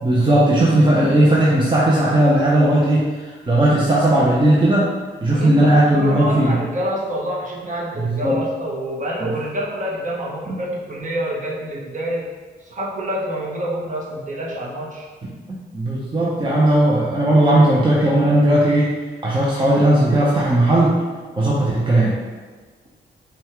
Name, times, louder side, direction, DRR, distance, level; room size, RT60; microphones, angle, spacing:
voice 1, 0.0-4.8 5.2-6.6 8.0-8.4 9.2-9.3 10.5-10.6 15.5-18.9 19.2-21.0 21.4-22.1, right 1 dB, 25° right, -5 dB, 0.8 m, -17 dB
voice 2, 5.3-12.3 12.6-15.1, right 1 dB, 40° right, -4 dB, 1.2 m, -27 dB
5.2 x 2.4 x 3.1 m, 1.4 s
supercardioid pair, 50°, 20 cm